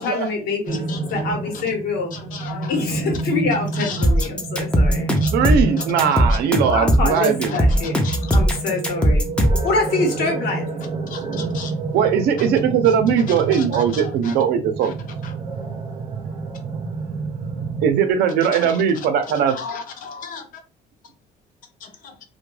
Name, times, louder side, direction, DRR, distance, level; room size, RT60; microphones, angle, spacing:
voice 1, 0.0-2.1 2.7-5.1 6.7-8.0 8.3-9.3 9.6-10.6, left 3 dB, 75° left, 2 dB, 0.9 m, -25 dB
voice 2, 0.7-1.2 2.1-2.9 3.7-4.3 5.2-5.3 6.1-6.4 7.5-7.6 8.0-8.4 11.1-11.7 13.5-14.3 14.8-14.9 18.7-18.8 19.5-20.4 21.8-21.9, left 5 dB, 55° left, 6 dB, 0.6 m, -35 dB
sound 1, 0.7-17.9, right 3 dB, 50° right, 0.7 m, -29 dB
sound 2, 4.0-9.7, equal, 5° left, 0.4 m, -18 dB
voice 3, 5.3-7.6 11.9-14.9 17.8-19.6, right 7 dB, 85° right, 7 dB, 0.5 m, -19 dB
2.2 x 2.2 x 3.1 m, 0.32 s
cardioid pair, 160°, 16 cm